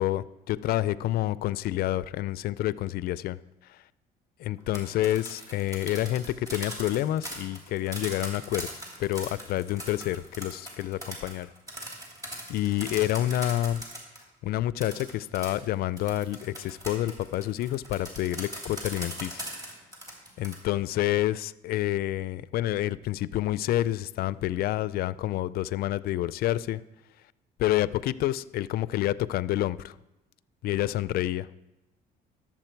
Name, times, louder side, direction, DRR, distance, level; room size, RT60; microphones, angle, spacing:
voice 1, 0.0-3.4 3.7-3.8 4.4-8.7 9.0-11.5 12.5-13.8 14.4-19.4 20.4-26.8 27.6-29.9 30.6-31.5, left 14 dB, 65° left, 17 dB, 0.4 m, -28 dB
sound 1, 4.6-14.2 14.8-20.6, right 1 dB, 20° right, 3.0 m, -40 dB
12.0 x 7.4 x 4.5 m, 0.99 s
cardioid pair, 110°, 17 cm